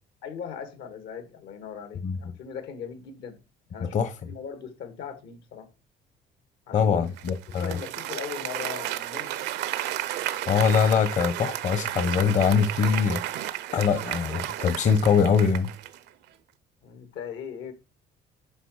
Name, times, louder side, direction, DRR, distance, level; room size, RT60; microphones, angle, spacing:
voice 1, 0.2-3.4 3.7-5.7 6.7-7.1 7.5-9.5 16.8-17.7, left 7 dB, 85° left, 1.9 m, -39 dB
voice 2, 3.8-4.1 6.7-7.8 10.5-13.5 13.7-15.7, left 6 dB, 45° left, 0.9 m, -23 dB
Applause, 7.2-16.1, right 13 dB, 85° right, 0.7 m, -33 dB
11.0 x 3.9 x 4.8 m
cardioid pair, 110°, 17 cm